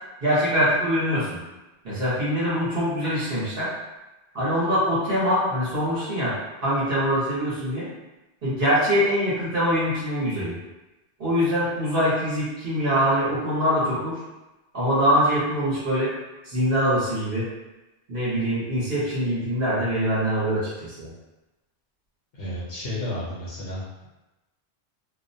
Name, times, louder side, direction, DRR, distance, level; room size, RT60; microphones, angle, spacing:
voice 1, 0.2-1.4 1.8-3.7 4.3-6.3 6.6-7.9 8.4-10.5 11.2-14.2 14.7-16.1 16.4-17.5 18.1-21.1, equal, 55° right, -10 dB, 1.1 m, -23 dB
voice 2, 22.3-24.1, left 1 dB, 65° left, -8 dB, 0.9 m, -32 dB
2.4 x 2.1 x 2.6 m, 1.1 s
omnidirectional pair, 1.2 m